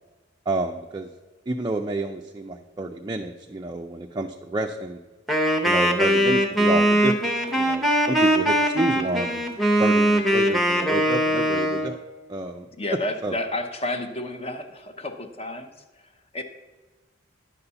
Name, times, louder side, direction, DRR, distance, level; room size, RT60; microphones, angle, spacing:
voice 1, 0.5-1.1 1.5-5.0 5.6-7.1 7.5-12.0 12.3-12.7 13.2-13.3, right 2 dB, 20° right, 3 dB, 0.4 m, -29 dB
Wind instrument woodwind instrument, 5.3-11.9, right 1 dB, ahead, 0.8 m, -21 dB
voice 2, 12.8-16.4, left 1 dB, 30° left, 7 dB, 0.7 m, -31 dB
10.0 x 4.1 x 6.8 m, 1.3 s
head